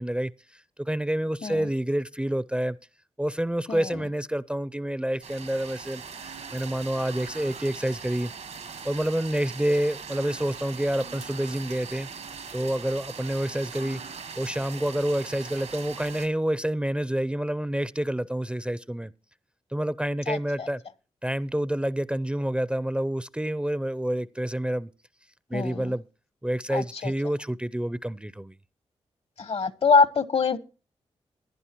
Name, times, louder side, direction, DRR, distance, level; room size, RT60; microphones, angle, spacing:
voice 1, 0.0-2.8 3.2-8.3 8.8-12.1 12.5-14.0 14.4-19.1 19.7-20.8 21.2-24.9 25.5-26.0 26.4-28.5, right 1 dB, 10° right, 0.5 m, -28 dB
voice 2, 3.7-4.0 20.3-20.7 25.5-25.9 26.7-27.1 29.4-30.6, left 5 dB, 55° left, 1.0 m, -24 dB
sound 1, 5.2-16.3, right 6 dB, 75° right, 1.4 m, -41 dB
15.5 x 11.0 x 3.0 m
cardioid pair, 50°, 12 cm